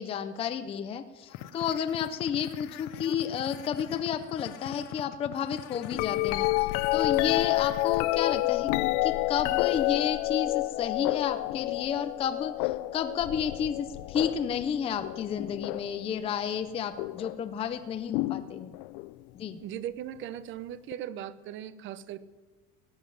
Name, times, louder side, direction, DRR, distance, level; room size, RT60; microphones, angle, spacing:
voice 1, 0.0-8.7 9.0-18.7 19.3-19.6, left 8 dB, 20° left, 10 dB, 0.5 m, -31 dB
sound 1, 1.3-8.0, left 13 dB, 65° left, 0.8 m, -42 dB
sound 2, 5.9-16.0 17.0-17.4 18.1-19.1 20.9-21.0, left 20 dB, 85° left, 0.5 m, -29 dB
voice 2, 19.6-22.2, right 11 dB, 40° right, 15 dB, 0.7 m, -38 dB
16.0 x 7.3 x 9.6 m, 1.3 s
cardioid pair, 175°, 30 cm